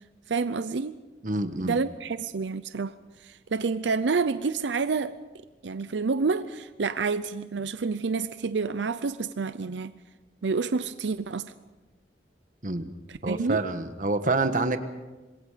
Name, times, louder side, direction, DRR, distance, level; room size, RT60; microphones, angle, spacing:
voice 1, 0.3-1.0 1.6-2.9 3.2-5.1 5.6-9.9 10.4-11.5 13.1-13.6, right 4 dB, 85° right, 0.6 m, -28 dB
voice 2, 1.2-1.8 12.6-12.9 13.2-14.8, right 2 dB, 45° right, 1.4 m, -27 dB
26.0 x 21.5 x 5.1 m
head